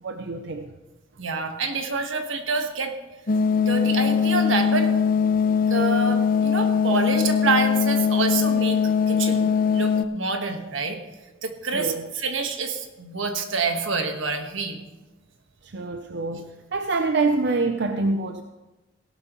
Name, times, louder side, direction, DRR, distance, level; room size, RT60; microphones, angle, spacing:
voice 1, 0.0-0.7 11.7-12.1 15.6-18.4, right 3 dB, 60° right, 0.6 m, -26 dB
voice 2, 1.2-2.9 3.6-4.9 5.7-8.8 9.1-11.0 11.4-14.8, right 4 dB, 85° right, 1.4 m, -27 dB
sound 1, 3.3-10.0, left 6 dB, 45° left, 0.5 m, -21 dB
16.5 x 12.0 x 3.0 m
head